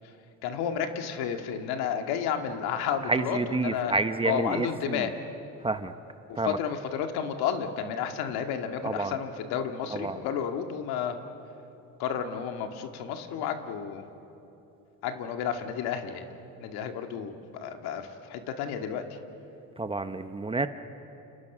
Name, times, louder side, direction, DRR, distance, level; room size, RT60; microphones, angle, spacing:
voice 1, 0.4-4.0 4.2-5.1 6.3-11.2 12.0-14.1 15.0-16.3 16.6-19.2, left 8 dB, 75° left, 5 dB, 2.2 m, -31 dB
voice 2, 3.1-5.0 5.6-5.9 6.4-6.6 8.8-9.1 9.9-10.1 19.8-20.7, right 3 dB, 15° right, 10 dB, 0.9 m, -29 dB
29.5 x 29.0 x 6.2 m, 3.0 s
cardioid pair, 110°, 38 cm